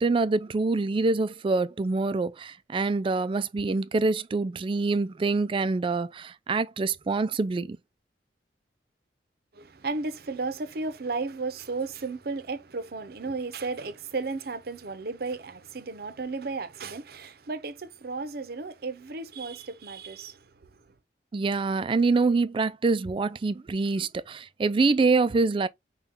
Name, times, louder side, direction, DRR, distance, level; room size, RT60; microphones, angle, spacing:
voice 1, 0.0-7.8 21.3-25.7, right 3 dB, 30° right, 0.3 m, -25 dB
voice 2, 9.5-20.5, right 3 dB, 60° right, 0.7 m, -34 dB
5.5 x 2.3 x 3.6 m
head